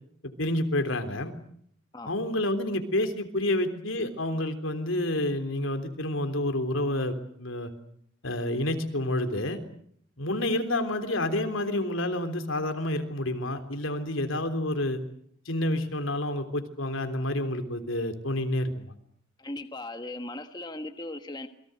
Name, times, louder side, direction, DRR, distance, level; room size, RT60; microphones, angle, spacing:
voice 1, 0.4-1.3 2.1-7.7 8.2-9.6 10.2-15.0 15.5-18.9, left 1 dB, 80° left, 8 dB, 3.5 m, -29 dB
voice 2, 19.4-21.5, left 2 dB, 20° left, 7 dB, 1.4 m, -38 dB
28.0 x 23.0 x 8.0 m, 0.65 s
head